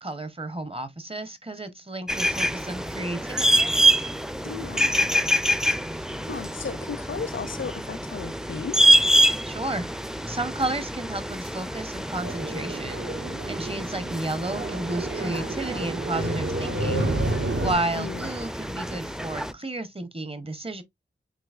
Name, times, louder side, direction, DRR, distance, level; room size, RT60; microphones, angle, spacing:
voice 1, 0.0-3.7 9.4-9.9 10.3-13.0 13.5-17.1 17.6-20.8, right 2 dB, 30° right, 0.8 m, -32 dB
sound 1, 2.1-19.5, right 1 dB, 5° right, 0.4 m, -26 dB
voice 2, 4.4-5.1 5.9-8.9 17.7-18.3, left 6 dB, 80° left, 0.6 m, -36 dB
sound 2, 12.2-17.7, right 2 dB, 70° right, 1.3 m, -30 dB
7.6 x 2.8 x 2.4 m
wide cardioid pair, 75°, 20 cm